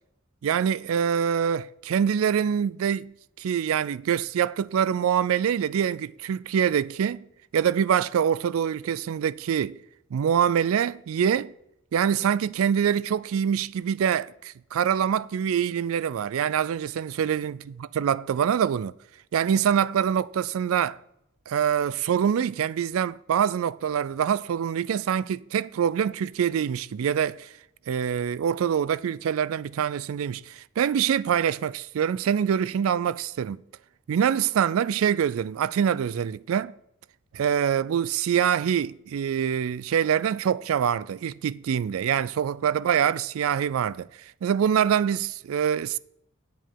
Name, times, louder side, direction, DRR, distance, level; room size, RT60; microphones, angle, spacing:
voice 1, 0.4-3.1 3.4-7.2 7.5-9.8 10.1-11.5 11.9-17.6 18.0-18.9 19.3-21.0 21.5-27.5 27.9-33.6 34.1-36.7 37.3-44.1 44.4-46.0, right 8 dB, 85° right, 0.3 m, -25 dB
10.0 x 5.2 x 7.3 m
head